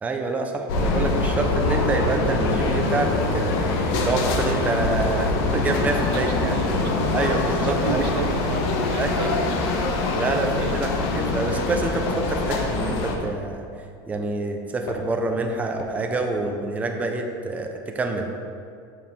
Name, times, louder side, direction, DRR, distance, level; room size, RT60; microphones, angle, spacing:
voice 1, 0.0-6.6 7.1-8.0 9.0-9.1 10.1-13.6 14.1-18.3, right 2 dB, 10° right, 3 dB, 0.5 m, -27 dB
sound 1, 0.7-13.2, left 2 dB, 65° left, 0.9 m, -24 dB
voice 2, 6.1-9.6 10.2-10.8 11.1-11.4, right 5 dB, 75° right, 5 dB, 0.8 m, -32 dB
sound 2, 8.3-11.4 11.7-17.1, left 3 dB, 90° left, 1.2 m, -42 dB
5.5 x 4.7 x 6.1 m, 2.3 s
supercardioid pair, 135°, 12 cm